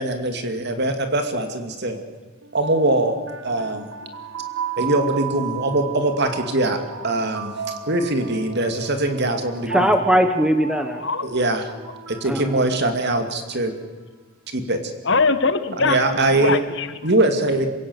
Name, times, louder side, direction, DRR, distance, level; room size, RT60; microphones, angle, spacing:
voice 1, 0.0-2.0 2.5-3.2 3.4-3.9 4.8-6.8 7.0-7.5 7.9-9.9 11.2-11.7 12.1-13.7 14.5-14.8 15.8-16.6 17.0-17.7, right 2 dB, 55° right, 7 dB, 2.6 m, -22 dB
sound 1, 2.4-13.5, right 6 dB, 75° right, 2.3 m, -34 dB
voice 2, 9.7-11.0 12.2-12.7 15.8-16.0, equal, 5° right, 7 dB, 1.1 m, -20 dB
voice 3, 15.0-17.1, left 4 dB, 60° left, 11 dB, 1.4 m, -22 dB
27.0 x 17.0 x 8.1 m, 1.3 s
head